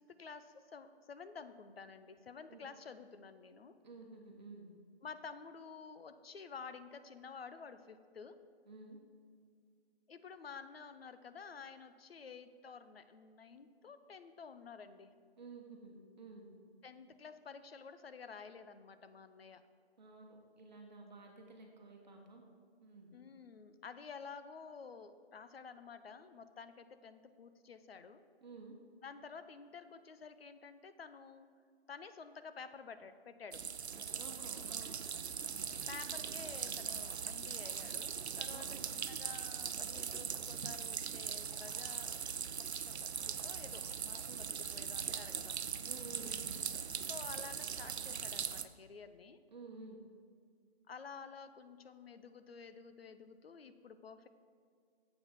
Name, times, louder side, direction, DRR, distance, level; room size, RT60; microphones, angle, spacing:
voice 1, 0.0-3.8 5.0-8.4 10.1-15.1 16.8-19.6 23.1-28.2 29.0-31.5 31.9-33.6 35.9-42.2 42.7-45.6 47.0-49.4 50.9-54.3, left 5 dB, 70° left, 11 dB, 0.7 m, -51 dB
voice 2, 3.8-4.7 8.7-9.0 15.4-16.5 20.0-22.4 22.8-23.1 28.4-28.7 34.1-35.0 38.5-38.9 44.3-44.4 45.8-46.5 49.5-50.0, right 3 dB, 45° right, 1 dB, 1.2 m, -52 dB
sound 1, 33.5-48.6, right 7 dB, 90° right, 0.6 m, -40 dB
7.7 x 5.9 x 5.9 m, 2.2 s
hypercardioid pair, 160°, 32 cm